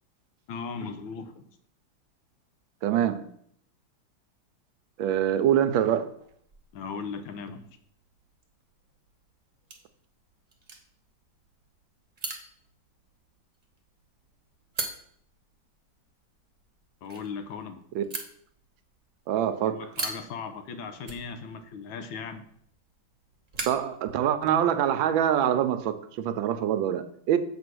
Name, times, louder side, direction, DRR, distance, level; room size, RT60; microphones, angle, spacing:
voice 1, 0.5-1.4 6.7-7.7 17.0-17.8 19.6-22.4, left 5 dB, 85° left, 1.5 m, -37 dB
voice 2, 2.8-3.2 5.0-6.1 17.9-18.0 19.3-19.9 23.7-27.4, right 10 dB, 80° right, 1.4 m, -25 dB
sound 1, 5.1-24.7, right 3 dB, 35° right, 0.6 m, -43 dB
7.5 x 4.0 x 6.1 m
omnidirectional pair, 2.1 m